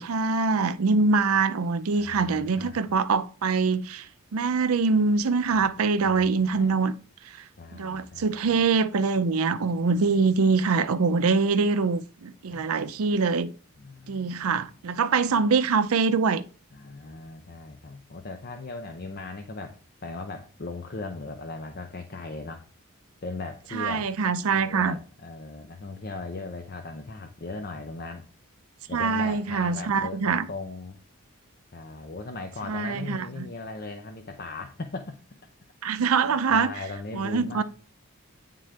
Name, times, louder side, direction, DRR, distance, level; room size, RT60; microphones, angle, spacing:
voice 1, 0.0-4.1 4.3-6.9 7.7-13.5 14.1-16.4 23.7-25.0 28.9-30.5 32.7-33.5 35.8-36.7 37.1-37.6, right 4 dB, 75° right, 0.5 m, -24 dB
voice 2, 1.9-2.8 5.6-5.7 6.0-6.7 7.6-8.6 12.5-12.6 13.8-14.7 16.7-22.6 23.2-24.1 24.5-28.2 28.9-31.0 31.7-35.2 35.9-37.6, left 3 dB, 45° left, 0.6 m, -38 dB
9.0 x 3.7 x 3.3 m
head